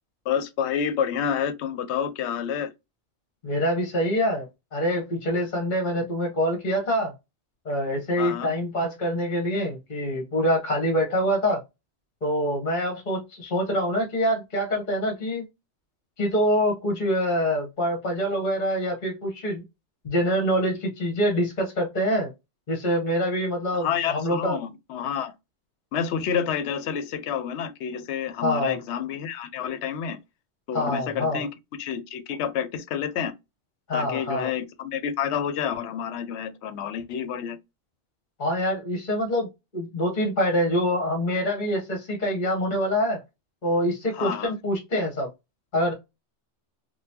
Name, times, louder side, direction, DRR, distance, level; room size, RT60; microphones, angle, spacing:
voice 1, 0.3-2.7 8.2-8.5 23.7-25.3 25.9-30.2 30.7-31.5 31.8-33.3 33.9-37.6 44.1-44.5, left 8 dB, 75° left, 0.8 m, -29 dB
voice 2, 3.4-7.1 7.6-11.6 12.2-15.4 16.2-19.6 20.0-22.3 22.7-24.6 28.4-28.8 30.7-31.4 33.9-34.5 38.4-43.2 43.6-45.3 45.7-45.9, equal, 45° left, 1.1 m, -25 dB
3.8 x 2.2 x 2.8 m
omnidirectional pair, 1.2 m